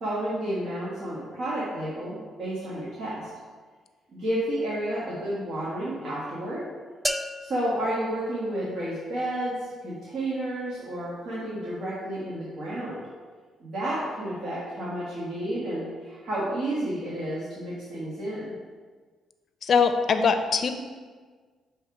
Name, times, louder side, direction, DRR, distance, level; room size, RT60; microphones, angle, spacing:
voice 1, 0.0-3.3 4.1-6.6 7.4-13.0 13.6-18.5, right 1 dB, 65° right, -7 dB, 1.5 m, -31 dB
sound 1, 7.0-9.0, equal, 10° right, 0.3 m, -34 dB
voice 2, 19.6-20.7, left 5 dB, 55° left, 8 dB, 0.5 m, -22 dB
6.5 x 3.3 x 4.7 m, 1.5 s
cardioid pair, 90°, 0 cm